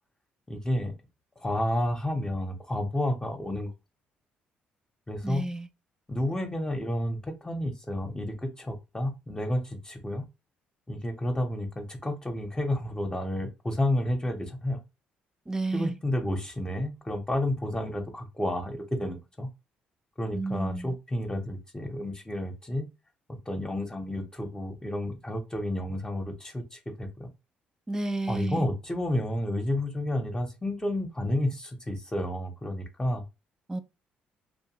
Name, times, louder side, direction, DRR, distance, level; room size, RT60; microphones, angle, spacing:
voice 1, 0.5-0.9 1.4-3.7 5.1-5.4 6.1-10.2 10.9-14.8 15.7-19.5 20.2-22.9 23.5-27.3 28.3-33.2, left 1 dB, 15° left, 0.9 m, -31 dB
voice 2, 5.2-5.7 15.5-16.0 20.3-21.0 27.9-28.7 33.7-33.8, right 2 dB, 15° right, 0.4 m, -31 dB
2.6 x 2.2 x 3.0 m
hypercardioid pair, 55°, 4 cm